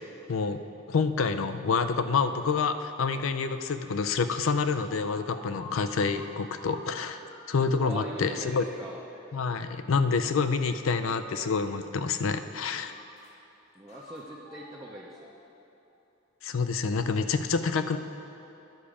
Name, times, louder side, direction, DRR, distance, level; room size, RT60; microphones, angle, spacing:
voice 1, 0.3-0.6 0.9-7.2 7.5-8.7 9.3-12.9 16.4-18.0, left 5 dB, 80° left, 10 dB, 0.5 m, -27 dB
sound 1, 4.9-7.6 8.1-9.9 10.5-11.7 11.9-13.4 13.9-15.7, left 2 dB, 35° left, 0.9 m, -51 dB
voice 2, 7.7-9.1 13.7-15.3, right 1 dB, 15° right, -4 dB, 0.6 m, -41 dB
10.5 x 7.0 x 4.9 m, 3.0 s
head